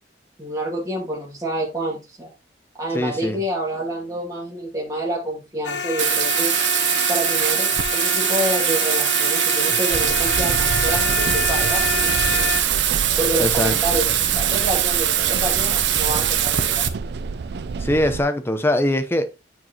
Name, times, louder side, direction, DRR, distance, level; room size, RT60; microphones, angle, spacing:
voice 1, 0.4-2.3 2.8-6.5 7.1-12.7 13.2-16.9, right 1 dB, 20° right, 2.1 m, -28 dB
voice 2, 2.9-3.4 13.4-13.8 17.8-19.2, left 1 dB, 15° left, 0.8 m, -21 dB
sound 1, 5.6-12.6, left 6 dB, 70° left, 0.7 m, -27 dB
Bathtub (filling or washing), 6.0-16.9, right 11 dB, 75° right, 0.8 m, -21 dB
sound 2, 9.9-18.2, right 4 dB, 60° right, 0.4 m, -30 dB
9.2 x 4.6 x 2.9 m
head